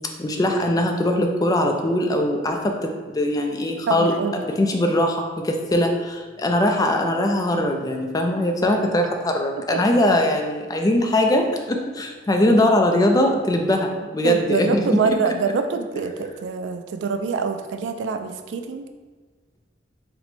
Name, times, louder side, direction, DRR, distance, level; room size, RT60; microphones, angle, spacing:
voice 1, 0.2-4.1 4.4-15.0, left 1 dB, 20° left, 3 dB, 0.4 m, -21 dB
voice 2, 3.9-4.4 14.2-18.9, right 5 dB, 90° right, 7 dB, 0.3 m, -25 dB
4.3 x 2.1 x 4.1 m, 1.4 s
head